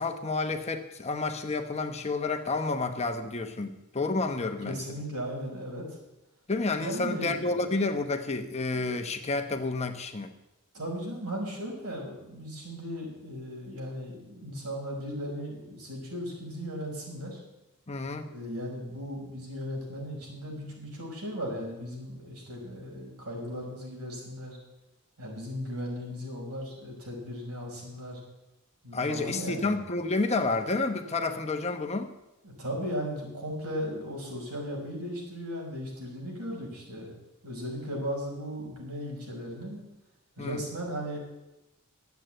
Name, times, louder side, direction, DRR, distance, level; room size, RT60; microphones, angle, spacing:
voice 1, 0.0-4.8 6.5-10.3 17.9-18.3 28.9-32.1 40.4-40.6, left 3 dB, 30° left, 6 dB, 1.0 m, -30 dB
voice 2, 4.7-6.0 6.7-7.7 10.7-17.4 18.3-24.6 25.2-28.2 28.8-29.7 32.4-37.1 37.4-39.8 40.4-41.2, equal, 90° right, -2 dB, 5.6 m, -37 dB
11.5 x 8.1 x 9.0 m, 0.93 s
head